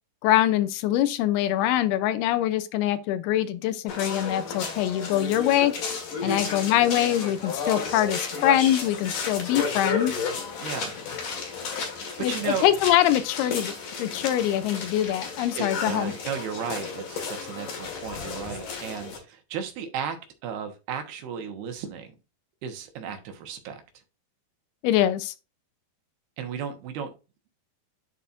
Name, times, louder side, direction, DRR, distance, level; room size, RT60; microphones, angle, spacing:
voice 1, 0.2-5.7 6.2-10.3 12.2-16.1 24.8-25.3, left 12 dB, 85° left, 2.5 m, -24 dB
sound 1, 3.9-19.2, left 5 dB, 60° left, 3.0 m, -33 dB
voice 2, 10.6-10.9 11.9-12.7 15.6-20.2 20.4-22.1 22.6-23.8 26.4-27.1, right 7 dB, 75° right, 3.1 m, -34 dB
11.0 x 4.2 x 2.5 m
omnidirectional pair, 4.6 m